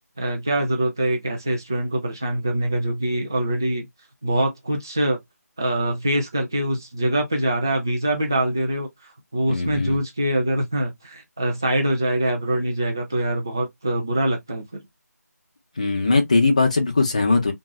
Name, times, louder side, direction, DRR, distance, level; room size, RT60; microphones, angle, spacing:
voice 1, 0.2-3.9 4.2-5.2 5.6-8.9 9.3-14.8, right 1 dB, 15° right, 0.4 m, -24 dB
voice 2, 9.5-10.0 15.8-17.5, left 3 dB, 25° left, 0.7 m, -20 dB
3.7 x 2.5 x 3.1 m
figure-of-eight pair, 165°, 9 cm